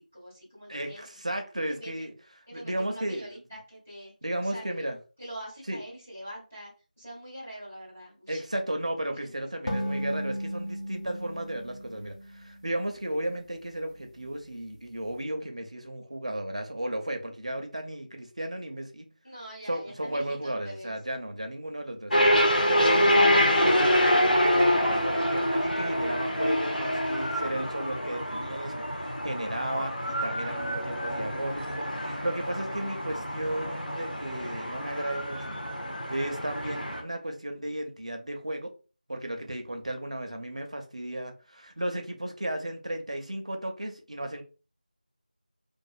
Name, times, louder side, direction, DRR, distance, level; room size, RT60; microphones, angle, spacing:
voice 1, 0.1-1.1 1.7-1.9 2.5-4.1 4.4-4.6 5.2-6.7 7.0-8.4 9.1-9.3 9.6-9.7 19.2-20.9, equal, 10° left, 0.4 m, -43 dB
voice 2, 0.7-3.4 4.2-5.0 5.7-5.8 8.3-19.1 19.7-35.6 36.1-38.7 39.1-44.4, right 1 dB, 45° right, 0.5 m, -34 dB
sound 1, 9.7-13.1, equal, 45° left, 0.9 m, -35 dB
sound 2, 22.1-37.0, equal, 85° left, 0.9 m, -26 dB
2.4 x 2.3 x 2.4 m
figure-of-eight pair, 175°, 5 cm